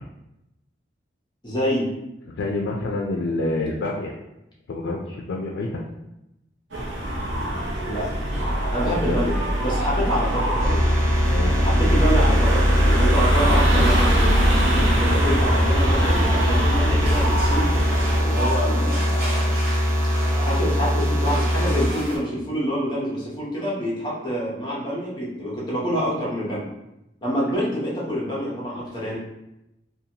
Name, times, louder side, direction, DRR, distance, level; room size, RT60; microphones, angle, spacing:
voice 1, 1.4-1.9 7.8-8.1 8.7-10.9 11.6-14.4 15.0-17.8 18.2-19.6 20.4-26.7 27.2-29.2, equal, 25° left, -6 dB, 0.7 m, -27 dB
voice 2, 2.3-4.1 4.7-5.8 8.8-9.2 11.3-11.6 14.8-14.9, left 2 dB, 80° left, -2 dB, 0.4 m, -27 dB
sound 1, 6.7-18.2, equal, 85° right, 0.6 m, -22 dB
sound 2, 10.6-21.9, equal, 15° right, 0.3 m, -22 dB
sound 3, 17.0-22.2, right 1 dB, 60° right, 1.0 m, -32 dB
2.7 x 2.2 x 2.8 m, 0.89 s
head